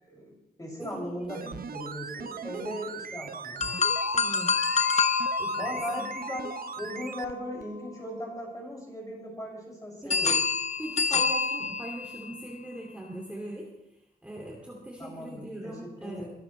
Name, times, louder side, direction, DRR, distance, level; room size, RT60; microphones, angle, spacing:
voice 1, 0.0-3.6 5.5-10.3 15.0-16.3, equal, 20° left, -3 dB, 6.6 m, -38 dB
voice 2, 0.8-1.6 2.5-2.8 4.1-4.5 5.4-6.1 10.0-10.4 10.8-13.7 14.2-16.3, right 1 dB, 5° right, -2 dB, 2.6 m, -41 dB
sound 1, 1.2-7.3 7.6-7.7, right 7 dB, 65° right, 0.6 m, -40 dB
sound 2, 3.6-7.7 10.1-12.4, left 5 dB, 45° left, 1.0 m, -28 dB
22.5 x 13.5 x 3.3 m, 0.90 s
wide cardioid pair, 115°, 17 cm